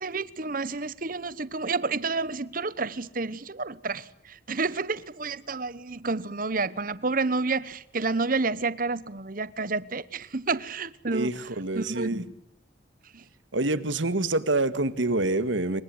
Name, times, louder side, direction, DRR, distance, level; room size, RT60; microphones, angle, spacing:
voice 1, 0.0-11.5 11.7-12.2 13.1-13.2, right 3 dB, 50° right, 1.1 m, -30 dB
voice 2, 11.0-12.2 13.5-15.8, right 2 dB, 85° right, 1.9 m, -26 dB
27.5 x 24.0 x 7.9 m
head